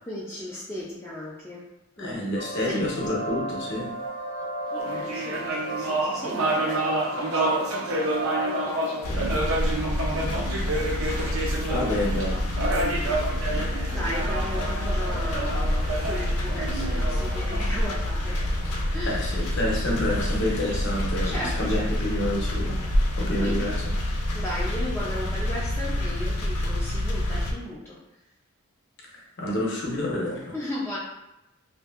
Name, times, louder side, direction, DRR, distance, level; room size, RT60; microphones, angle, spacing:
voice 1, 0.1-1.7 2.0-2.2 2.6-2.9 4.7-8.0 8.4-9.0 13.9-18.6 18.9-19.4 21.2-22.1 23.4-23.7 24.3-28.0 30.5-31.0, left 1 dB, 10° left, -7 dB, 0.3 m, -36 dB
voice 2, 2.0-4.0 9.1-9.2 11.2-11.4 11.7-12.4 19.1-23.8 29.1-30.5, left 1 dB, 50° left, -2 dB, 0.7 m, -29 dB
sound 1, 2.4-8.9, right 1 dB, 85° right, 1.3 m, -34 dB
sound 2, 4.7-18.4, right 2 dB, 65° right, 0.5 m, -29 dB
sound 3, 9.0-27.5, left 1 dB, 85° left, 0.5 m, -27 dB
2.6 x 2.6 x 2.4 m, 0.91 s
head